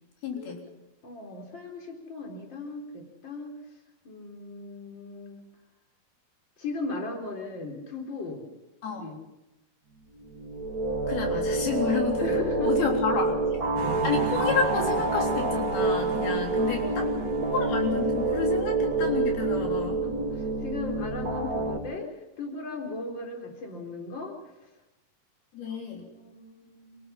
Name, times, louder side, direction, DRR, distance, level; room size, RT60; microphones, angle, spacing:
voice 1, 0.2-0.6 8.8-9.1 11.1-12.3 12.6-13.7 14.0-17.1 17.5-20.0 25.5-26.0, left 5 dB, 85° left, 1 dB, 5.5 m, -30 dB
voice 2, 1.0-3.5 4.0-5.4 6.6-8.4 9.0-9.2 11.3-11.5 11.9-13.0 16.3-17.3 20.0-22.1 22.4-24.3 26.1-27.0, left 3 dB, 30° left, 1 dB, 4.2 m, -37 dB
sound 1, 10.2-21.8, right 2 dB, 55° right, 1.0 m, -27 dB
sound 2, 13.8-19.4, right 10 dB, 70° right, 2.7 m, -39 dB
27.0 x 18.0 x 5.8 m, 0.96 s
omnidirectional pair, 4.2 m